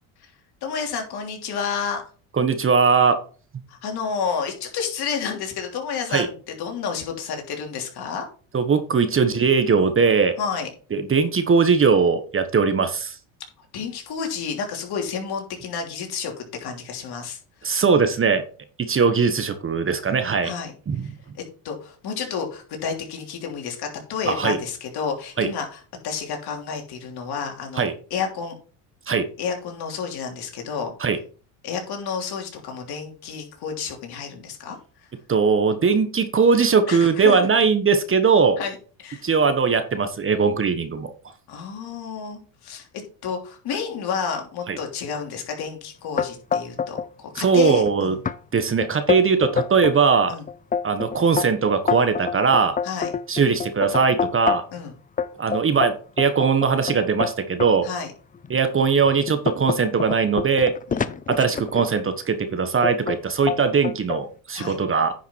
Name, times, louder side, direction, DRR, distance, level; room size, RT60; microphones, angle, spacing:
voice 1, 0.6-2.0 3.7-8.3 10.4-10.7 13.7-17.8 20.4-20.7 21.0-28.6 29.4-30.9 31.6-34.8 36.9-37.5 38.6-38.8 39.0-39.2 41.5-42.9 43.2-48.2 50.3-50.4 52.8-53.1 54.7-54.9 57.8-58.1 60.9-61.2 64.5-64.8, left 6 dB, 55° left, 2 dB, 3.2 m, -30 dB
voice 2, 2.4-3.2 6.1-6.3 8.5-10.3 10.9-13.2 17.6-18.4 18.9-20.5 20.9-21.1 24.2-24.6 25.4-25.5 27.8-27.9 29.1-29.3 31.0-31.2 35.3-38.6 39.2-41.1 44.7-44.8 47.4-48.2 48.5-50.3 50.8-52.7 53.3-54.6 55.4-57.9 58.5-60.7 61.3-65.1, right 5 dB, 30° right, 9 dB, 1.3 m, -20 dB
sound 1, 46.2-47.1 47.4-47.9 48.3-48.4 48.8-50.0 50.5-54.8 55.2-57.7 58.3-58.5 59.0-62.0 62.8-63.2 63.5-64.2, left 6 dB, 20° left, 0.6 m, -26 dB
10.0 x 5.8 x 4.6 m, 0.39 s
supercardioid pair, 90°, 45 cm